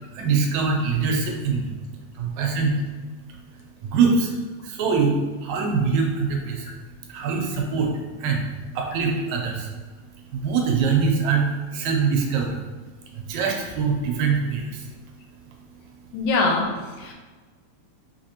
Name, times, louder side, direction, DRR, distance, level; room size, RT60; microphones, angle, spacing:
voice 1, 0.1-1.7 2.1-2.9 3.3-3.4 3.8-4.4 4.6-6.8 7.1-8.5 8.7-9.7 10.3-12.6 13.1-15.0 15.7-15.8, right 5 dB, 80° right, 1 dB, 1.8 m, -23 dB
voice 2, 16.1-17.1, left 3 dB, 80° left, 0 dB, 2.0 m, -23 dB
5.2 x 3.3 x 2.8 m, 1.4 s
omnidirectional pair, 3.4 m